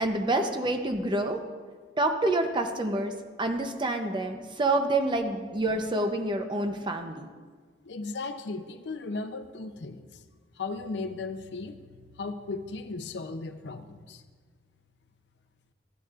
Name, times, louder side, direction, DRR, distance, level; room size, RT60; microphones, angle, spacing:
voice 1, 0.0-1.4 2.0-3.1 3.4-7.3, right 2 dB, 25° right, 5 dB, 0.7 m, -27 dB
voice 2, 7.8-10.2 10.6-14.2, left 3 dB, 75° left, 9 dB, 0.6 m, -36 dB
14.5 x 9.1 x 2.5 m, 1.5 s
head